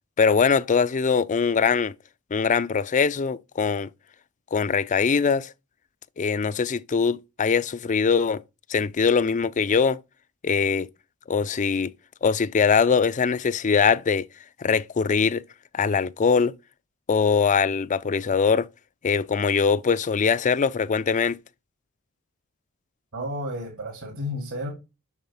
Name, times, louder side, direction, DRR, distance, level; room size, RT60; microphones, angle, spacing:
voice 1, 0.2-1.9 2.3-3.9 4.5-5.5 6.2-8.4 8.7-10.0 10.4-10.9 11.3-11.9 12.2-14.3 14.6-15.4 15.7-16.5 17.1-18.7 19.0-21.4, left 5 dB, 35° left, 0.4 m, -22 dB
voice 2, 23.1-24.7, left 1 dB, 65° right, 2.5 m, -32 dB
7.3 x 6.3 x 5.5 m
head